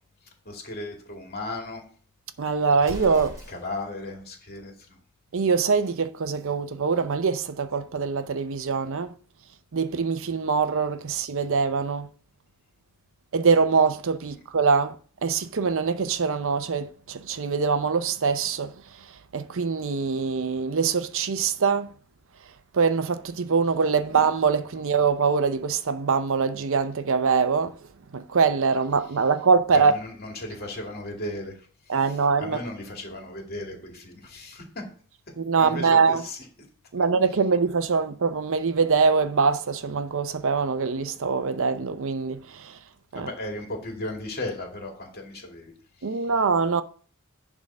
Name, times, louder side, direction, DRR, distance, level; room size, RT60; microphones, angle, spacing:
voice 1, 0.4-1.8 3.5-4.9 14.3-14.4 29.7-34.8 35.6-36.4 37.0-37.1 43.1-45.7 46.0-46.2, left 2 dB, 45° left, 2.3 m, -36 dB
voice 2, 2.4-3.3 5.3-9.1 9.7-12.1 13.3-15.0 15.2-18.7 19.3-21.9 22.7-27.7 28.1-30.0 31.9-32.6 35.4-36.2 36.9-42.8 43.1-43.3 46.0-46.8, right 5 dB, 65° right, 0.6 m, -23 dB
Explosion, 2.8-3.9, equal, 15° right, 2.6 m, -39 dB
10.5 x 3.7 x 6.1 m
head